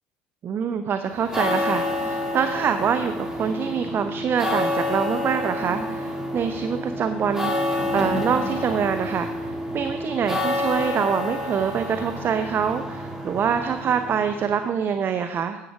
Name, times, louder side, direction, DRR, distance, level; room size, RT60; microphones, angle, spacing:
voice 1, 0.4-15.6, right 7 dB, 40° right, 8 dB, 0.6 m, -25 dB
sound 1, 1.1-14.6, left 1 dB, 10° right, 1.9 m, -28 dB
11.0 x 8.5 x 3.5 m, 1.0 s
hypercardioid pair, 65°, 6 cm